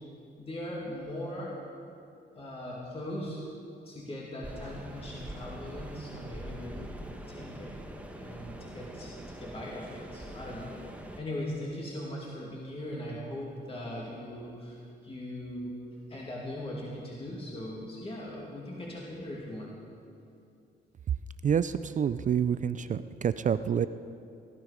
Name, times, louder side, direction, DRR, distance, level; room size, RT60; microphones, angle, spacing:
voice 1, 0.4-1.6 2.3-3.4 3.8-6.9 7.3-7.7 8.1-10.8 11.2-15.8 16.1-19.7, left 1 dB, 30° left, -4 dB, 2.5 m, -39 dB
sound 1, 4.4-11.2, right 1 dB, 5° right, 1.4 m, -43 dB
voice 2, 21.4-23.9, right 8 dB, 40° right, 13 dB, 0.4 m, -28 dB
18.0 x 11.0 x 5.1 m, 2.5 s
cardioid pair, 90°, 20 cm